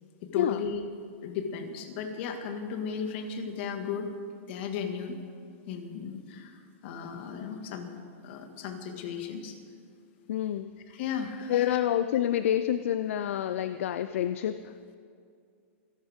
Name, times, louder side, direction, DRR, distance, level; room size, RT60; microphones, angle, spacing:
voice 1, 0.2-0.8 1.2-4.1 4.5-5.2 5.7-7.9 8.2-9.6 10.9-11.7, left 6 dB, 55° left, 5 dB, 1.9 m, -35 dB
voice 2, 10.3-10.7 11.5-14.6, left 11 dB, 70° left, 11 dB, 0.5 m, -28 dB
27.0 x 11.5 x 3.6 m, 2.3 s
hypercardioid pair, 145°, 7 cm